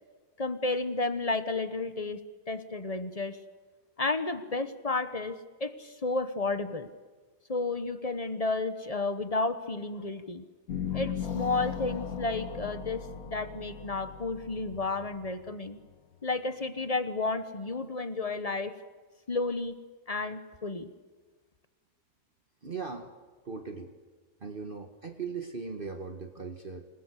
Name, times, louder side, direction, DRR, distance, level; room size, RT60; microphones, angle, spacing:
voice 1, 0.4-3.4 4.0-6.9 7.5-10.5 10.9-15.8 16.2-18.8 19.3-19.8 20.1-20.9, left 3 dB, 30° left, 11 dB, 1.1 m, -32 dB
sound 1, 10.7-15.9, left 8 dB, 80° left, 1.7 m, -37 dB
voice 2, 22.6-23.1 23.4-23.9 24.4-26.9, right 5 dB, 40° right, 6 dB, 1.4 m, -39 dB
26.5 x 19.5 x 8.3 m, 1.4 s
omnidirectional pair, 1.5 m